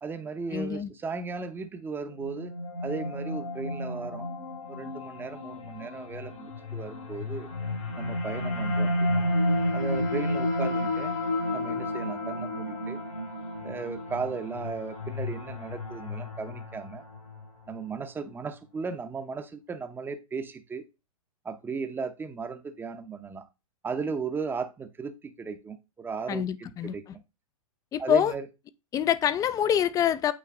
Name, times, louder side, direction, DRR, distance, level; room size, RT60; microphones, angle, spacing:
voice 1, 0.0-2.5 2.8-4.3 4.7-7.5 8.0-9.3 9.7-11.2 11.5-13.0 13.6-17.0 17.7-20.8 21.4-23.5 23.8-27.0 28.0-28.5, right 5 dB, 10° right, 0.8 m, -36 dB
voice 2, 0.5-0.9 26.3-26.9 27.9-28.3 28.9-30.3, left 9 dB, 20° left, 0.5 m, -25 dB
sound 1, 2.1-17.4, left 1 dB, 85° left, 2.7 m, -31 dB
8.6 x 3.1 x 3.5 m
hypercardioid pair, 120°, 18 cm